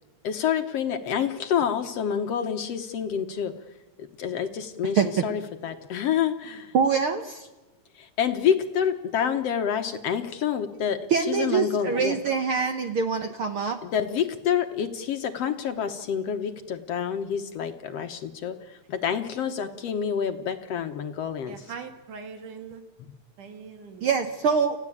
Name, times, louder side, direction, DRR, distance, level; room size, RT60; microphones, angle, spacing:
voice 1, 0.2-3.5 4.0-6.7 8.0-12.2 13.8-21.6, left 8 dB, 65° left, 7 dB, 1.8 m, -28 dB
voice 2, 6.7-7.5 11.1-13.8 24.0-24.8, right 6 dB, 60° right, 7 dB, 1.5 m, -24 dB
voice 3, 21.5-22.8 23.4-24.2, right 5 dB, 80° right, 8 dB, 3.6 m, -41 dB
30.0 x 15.0 x 8.5 m, 1.2 s
omnidirectional pair, 3.6 m